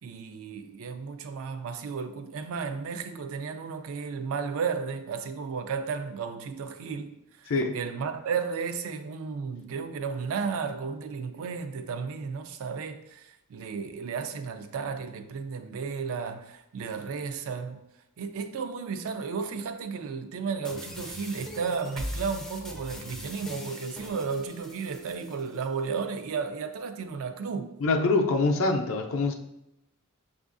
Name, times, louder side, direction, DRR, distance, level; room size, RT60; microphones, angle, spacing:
voice 1, 0.0-17.8 18.2-27.7, right 5 dB, 65° right, 0.4 m, -33 dB
voice 2, 7.5-7.8 27.8-29.3, left 3 dB, 65° left, 0.5 m, -24 dB
sound 1, 20.6-25.7, equal, 5° left, 0.4 m, -41 dB
6.0 x 2.4 x 2.5 m
head